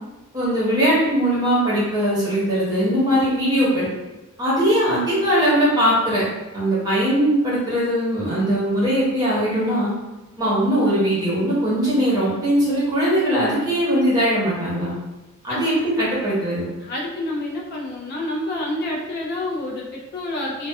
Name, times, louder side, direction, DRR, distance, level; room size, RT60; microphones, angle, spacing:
voice 1, 0.3-3.9 4.4-6.2 6.5-9.9 10.4-14.9 15.4-16.7, equal, 20° right, -9 dB, 0.9 m, -20 dB
voice 2, 16.8-20.7, left 1 dB, 50° left, -2 dB, 0.4 m, -28 dB
2.5 x 2.3 x 2.2 m, 1.1 s
head